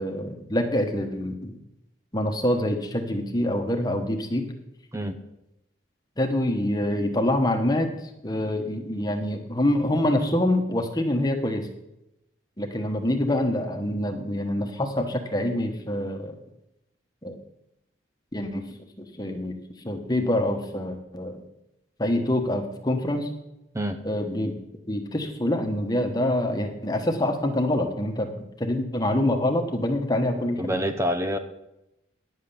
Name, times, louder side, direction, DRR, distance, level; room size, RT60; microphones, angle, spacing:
voice 1, 0.0-1.6 2.1-4.5 6.2-7.9 8.2-11.7 12.6-16.4 17.2-17.4 18.3-19.6 19.8-21.4 22.0-23.3 24.0-24.6 24.9-28.3 28.6-30.8, left 1 dB, 20° left, 5 dB, 1.1 m, -26 dB
voice 2, 30.6-31.4, equal, 15° right, 8 dB, 0.6 m, -26 dB
10.0 x 7.5 x 6.9 m, 0.89 s
head